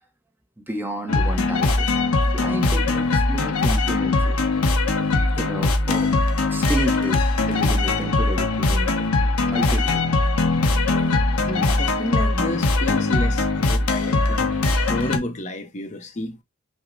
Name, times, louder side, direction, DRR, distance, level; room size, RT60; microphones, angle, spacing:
voice 1, 0.6-1.9 2.3-4.4 5.3-6.1 6.5-8.9 9.5-10.0, right 1 dB, 10° right, 0.6 m, -31 dB
sound 1, 1.1-15.2, left 2 dB, 85° left, 0.9 m, -21 dB
voice 2, 11.5-14.5 14.9-16.4, left 1 dB, 35° left, 0.6 m, -30 dB
6.0 x 2.1 x 3.7 m
head